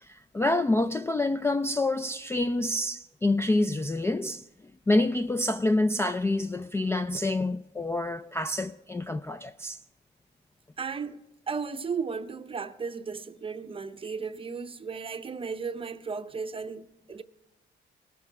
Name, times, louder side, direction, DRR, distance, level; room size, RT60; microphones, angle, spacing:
voice 1, 0.0-4.4 4.9-9.8, left 2 dB, 15° left, 0.3 m, -27 dB
voice 2, 10.8-17.2, right 5 dB, 25° right, 0.7 m, -35 dB
19.5 x 6.8 x 4.8 m
cardioid pair, 90°, 20 cm